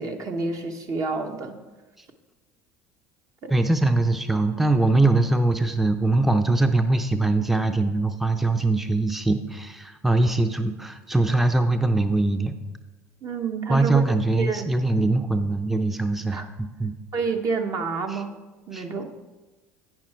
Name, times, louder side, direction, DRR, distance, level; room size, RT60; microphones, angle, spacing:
voice 1, 0.0-1.5 3.4-3.6 13.2-14.7 16.3-16.5 17.1-18.3 18.7-19.1, right 4 dB, 45° right, 5 dB, 0.8 m, -29 dB
voice 2, 3.5-12.5 13.7-16.9 18.1-18.2 18.7-18.9, right 2 dB, 5° right, 8 dB, 0.5 m, -22 dB
8.8 x 6.0 x 4.4 m, 1.2 s
hypercardioid pair, 75°, 8 cm